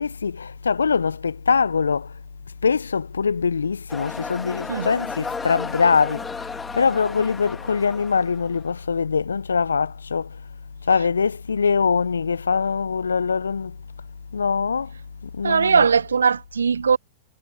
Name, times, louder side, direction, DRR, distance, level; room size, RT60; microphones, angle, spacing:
voice 1, 0.0-2.1 2.6-6.3 6.7-10.4 10.9-13.8 14.3-14.9 15.3-15.9, left 5 dB, 80° left, 0.6 m, -23 dB
sound 1, 3.9-8.7, left 4 dB, 15° left, 2.2 m, -34 dB
voice 2, 15.4-17.0, right 6 dB, 75° right, 0.4 m, -19 dB
figure-of-eight pair, 95°, 0 cm